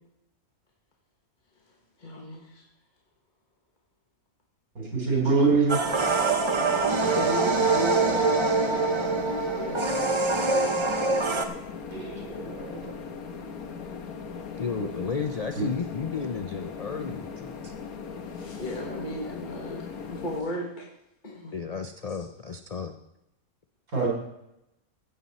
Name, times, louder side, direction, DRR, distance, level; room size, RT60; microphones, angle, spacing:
voice 1, 2.0-2.6 7.0-9.9 18.3-20.9 21.2-21.5, equal, 35° left, -2 dB, 1.6 m, -35 dB
voice 2, 4.8-5.8 11.9-12.8 15.6-15.7 23.9-24.1, right 4 dB, 80° right, -2 dB, 4.0 m, -24 dB
sound 1, 5.7-11.5, right 3 dB, 25° right, 0.6 m, -24 dB
sound 2, 5.8-20.4, left 5 dB, 85° left, 1.5 m, -39 dB
voice 3, 14.5-17.7 21.5-22.9, left 5 dB, 70° left, 7 dB, 0.3 m, -33 dB
15.0 x 7.5 x 4.1 m, 0.85 s
omnidirectional pair, 1.5 m